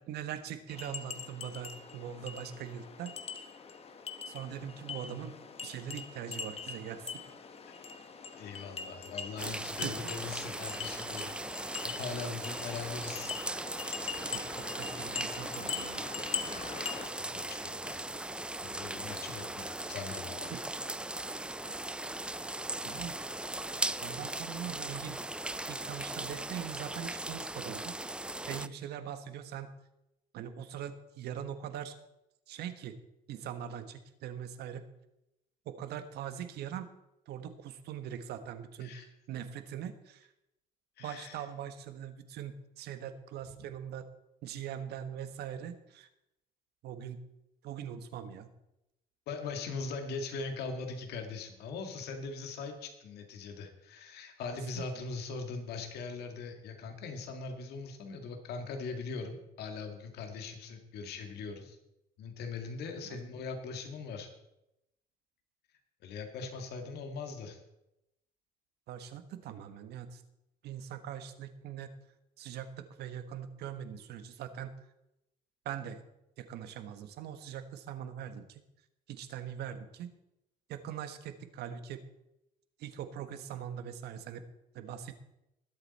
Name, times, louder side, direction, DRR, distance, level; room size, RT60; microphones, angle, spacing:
voice 1, 0.1-3.5 4.3-5.3 5.6-7.1 9.8-10.1 12.2-12.5 14.2-16.0 20.5-20.6 21.7-21.8 22.8-23.2 24.0-25.2 25.7-27.9 28.5-29.7 30.3-32.0 32.5-33.0 33.3-34.9 35.6-36.9 37.3-39.0 39.3-40.3 41.0-44.1 44.4-46.1 46.8-47.2 47.6-48.5 54.7-54.8 63.0-63.2 66.4-66.5 68.9-70.2 70.6-71.9 72.4-74.7 75.6-76.0 76.4-78.6 79.1-80.1 80.7-82.0 82.8-84.4 84.7-85.1, right 9 dB, 75° right, 9 dB, 1.4 m, -42 dB
sound 1, 0.7-17.1, left 5 dB, 35° left, 1.3 m, -42 dB
voice 2, 8.3-11.3 11.8-13.3 17.2-18.1 18.6-20.6 38.8-39.1 41.0-41.4 49.3-61.8 62.2-64.3 66.0-67.6, left 4 dB, 75° left, 5 dB, 1.9 m, -41 dB
sound 2, 9.4-28.7, right 1 dB, 5° right, 0.4 m, -38 dB
20.5 x 8.1 x 4.2 m, 0.87 s
cardioid pair, 110°, 17 cm